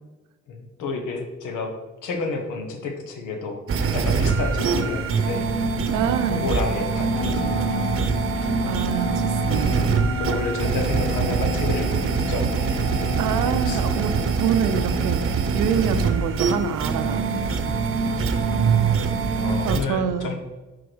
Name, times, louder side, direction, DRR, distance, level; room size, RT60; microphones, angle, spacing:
voice 1, 0.5-3.6 3.9-5.5 6.3-8.0 8.3-8.5 9.6-9.7 10.2-12.9 13.4-14.0 15.7-16.0 18.1-18.5 19.4-20.3, left 3 dB, 80° left, 4 dB, 1.2 m, -31 dB
sound 1, 3.7-19.8, right 5 dB, 45° right, 0.8 m, -23 dB
voice 2, 5.9-6.5 8.6-9.9 13.2-17.6 19.6-20.3, right 8 dB, 90° right, 9 dB, 0.6 m, -26 dB
Wind instrument woodwind instrument, 7.1-15.2, left 5 dB, 20° left, 0.4 m, -34 dB
4.8 x 4.6 x 6.1 m, 1.2 s
cardioid pair, 90°, 30 cm